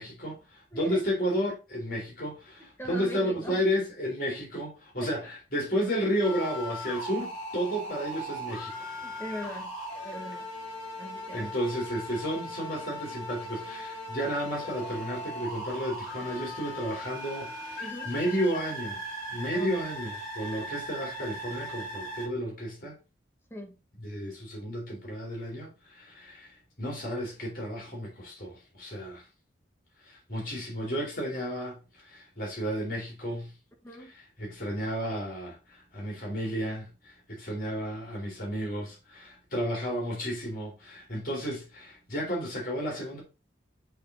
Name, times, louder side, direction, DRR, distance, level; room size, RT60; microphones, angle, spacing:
voice 1, 0.0-8.9 11.3-19.0 19.3-23.0 24.0-29.2 30.0-33.5 34.1-43.2, equal, 45° left, 2.7 m, -32 dB
voice 2, 0.7-1.0 2.8-3.6 5.0-5.3 9.0-9.8 10.0-10.5 11.0-11.5 17.8-18.1 19.5-19.7 23.5-23.8 33.8-34.1, equal, 10° left, 1.1 m, -40 dB
sound 1, 6.2-22.3, equal, 30° left, 3.8 m, -39 dB
7.9 x 3.5 x 4.0 m
head